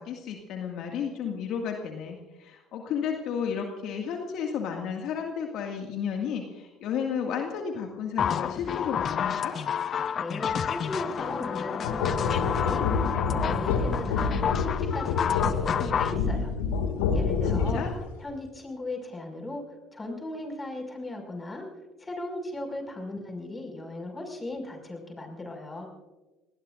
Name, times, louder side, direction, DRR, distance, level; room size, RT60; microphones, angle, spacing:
voice 1, 0.0-9.6 17.5-17.9, left 7 dB, 60° left, 2 dB, 2.0 m, -32 dB
sound 1, 8.2-16.2, left 8 dB, 45° left, 0.8 m, -29 dB
voice 2, 10.2-16.5 17.1-17.8 18.2-19.6 19.9-21.7 22.0-25.9, left 2 dB, 20° left, 2 dB, 5.7 m, -37 dB
sound 2, 11.8-18.0, left 5 dB, 80° left, 2.1 m, -27 dB
28.0 x 19.5 x 2.6 m, 1.2 s
hypercardioid pair, 65°, 0 cm